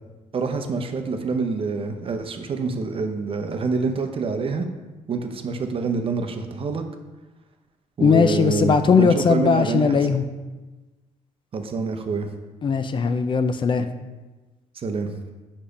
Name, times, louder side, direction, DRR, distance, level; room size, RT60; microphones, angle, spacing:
voice 1, 0.3-4.7 5.1-6.8 8.0-10.0 11.5-12.3 14.8-15.1, right 4 dB, 45° right, 6 dB, 0.7 m, -26 dB
voice 2, 8.0-10.2 12.6-13.9, left 5 dB, 35° left, 9 dB, 0.4 m, -19 dB
5.5 x 4.9 x 5.1 m, 1.2 s
cardioid pair, 95°, 14 cm